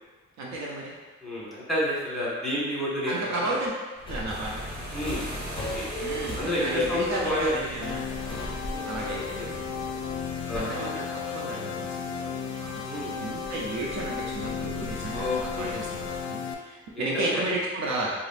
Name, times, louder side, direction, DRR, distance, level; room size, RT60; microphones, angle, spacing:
voice 1, 0.4-0.9 3.0-3.7 4.1-4.6 6.0-8.1 8.9-9.8 10.5-12.3 12.6-18.1, right 2 dB, 65° right, -3 dB, 0.6 m, -33 dB
voice 2, 1.2-3.5 4.9-5.2 5.7-5.9 6.3-7.5 8.7-8.9 9.4-9.5 10.4-11.0 12.9-13.2 15.1-15.8 16.9-17.4, left 1 dB, ahead, -8 dB, 1.5 m, -30 dB
Subway metro underground, 4.0-10.6, left 1 dB, 15° left, 0.5 m, -38 dB
sound 1, 4.3-16.2, equal, 30° right, 1.1 m, -42 dB
sound 2, 7.8-16.5, left 7 dB, 65° left, 0.4 m, -34 dB
4.8 x 2.0 x 2.5 m, 1.3 s
cardioid pair, 90°, 30 cm